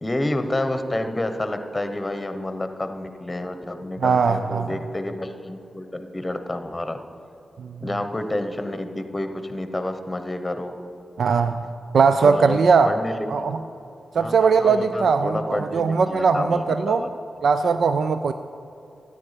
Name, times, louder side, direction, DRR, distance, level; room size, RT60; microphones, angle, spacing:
voice 1, 0.0-7.0 7.8-10.7 12.2-12.6 12.8-13.4 14.2-17.1, left 1 dB, 20° left, 7 dB, 1.0 m, -29 dB
voice 2, 4.0-4.8 7.6-7.8 11.2-11.7 11.9-12.9 13.3-13.6 14.1-17.0 17.4-18.3, right 5 dB, 75° right, 10 dB, 0.4 m, -20 dB
13.0 x 10.0 x 5.1 m, 2.7 s
cardioid pair, 75°, 0 cm